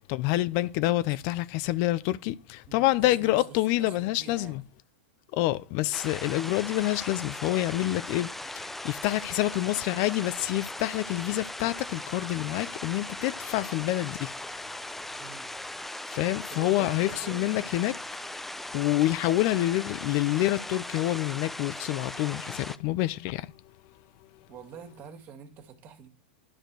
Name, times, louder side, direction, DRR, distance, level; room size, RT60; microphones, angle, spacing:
voice 1, 0.0-4.6 5.3-14.3 16.1-17.9 18.7-23.5, left 16 dB, 50° left, 0.6 m, -27 dB
voice 2, 2.7-4.7 15.2-15.5 16.5-17.7 18.9-19.0 24.5-26.1, right 6 dB, 35° right, 2.3 m, -46 dB
sound 1, 5.9-22.8, left 1 dB, 5° left, 0.6 m, -39 dB
11.5 x 5.1 x 6.2 m
hypercardioid pair, 130°, 5 cm